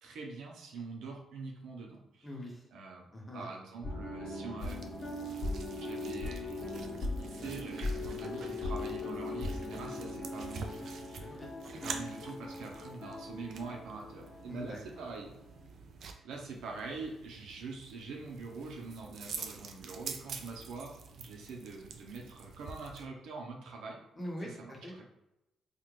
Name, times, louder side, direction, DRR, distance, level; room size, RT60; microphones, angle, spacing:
voice 1, 0.0-2.3 2.7-3.1 3.3-4.9 5.8-6.8 7.2-15.3 16.2-24.0 24.4-25.1, right 4 dB, 80° right, 0 dB, 0.8 m, -44 dB
voice 2, 2.2-2.6 3.1-3.5 11.2-11.8 14.5-14.8 24.2-25.1, left 1 dB, 20° left, -1 dB, 1.1 m, -43 dB
sound 1, 3.8-15.2 15.5-15.6, left 2 dB, 40° left, 1.2 m, -39 dB
sound 2, 4.6-23.0, right 5 dB, 65° right, 0.5 m, -47 dB
4.1 x 2.5 x 3.2 m, 0.89 s
cardioid pair, 90°, 0 cm